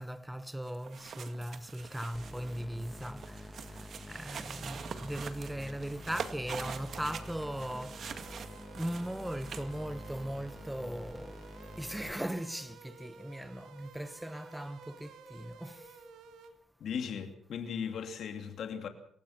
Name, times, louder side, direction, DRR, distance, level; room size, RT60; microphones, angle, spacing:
voice 1, 0.0-3.2 4.1-8.0 8.8-11.4 11.8-15.7, right 1 dB, 5° right, 1.3 m, -38 dB
sound 1, 0.7-9.8, right 6 dB, 55° right, 2.0 m, -44 dB
sound 2, 2.1-12.1, left 1 dB, 10° left, 2.1 m, -47 dB
sound 3, 6.7-16.5, right 5 dB, 80° right, 3.0 m, -53 dB
voice 2, 16.8-18.9, left 7 dB, 65° left, 2.8 m, -37 dB
28.0 x 15.5 x 6.0 m
cardioid pair, 90°, 0 cm